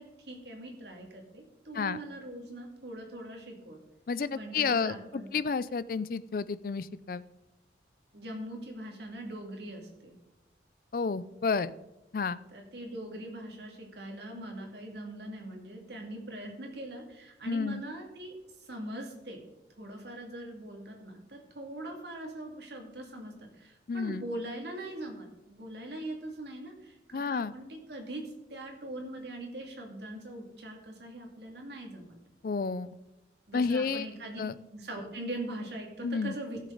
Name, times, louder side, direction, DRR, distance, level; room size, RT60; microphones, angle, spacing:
voice 1, 0.0-3.8 4.3-5.4 8.1-10.2 12.5-19.4 19.8-32.2 33.5-34.4 34.7-36.6, right 1 dB, 70° right, 1 dB, 2.3 m, -42 dB
voice 2, 4.1-7.2 10.9-11.7 12.1-12.4 17.4-17.8 23.9-24.2 27.1-27.5 32.4-33.0 33.5-34.1 34.4-34.5 36.0-36.3, left 5 dB, 50° left, 17 dB, 0.4 m, -31 dB
15.0 x 6.6 x 3.9 m, 0.99 s
head